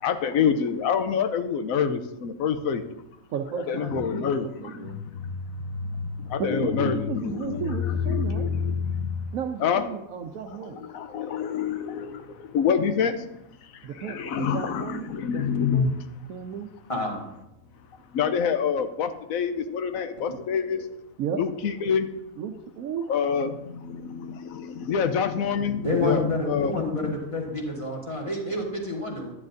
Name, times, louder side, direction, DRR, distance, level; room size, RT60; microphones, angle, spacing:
voice 1, 0.0-2.8 3.7-5.4 5.7-9.3 9.6-9.8 10.9-13.3 14.0-15.9 18.1-20.9 21.4-22.1 23.1-26.7 27.0-27.2, left 7 dB, 80° left, 9 dB, 1.1 m, -26 dB
voice 2, 3.3-5.0 6.3-8.5 9.3-10.9 13.8-15.9 16.3-16.7 21.2-21.4 22.4-23.2, right 7 dB, 85° right, 2 dB, 1.1 m, -34 dB
voice 3, 16.9-17.2 25.8-29.3, left 1 dB, 25° left, -2 dB, 1.7 m, -29 dB
11.0 x 9.5 x 2.6 m, 0.88 s
omnidirectional pair, 1.4 m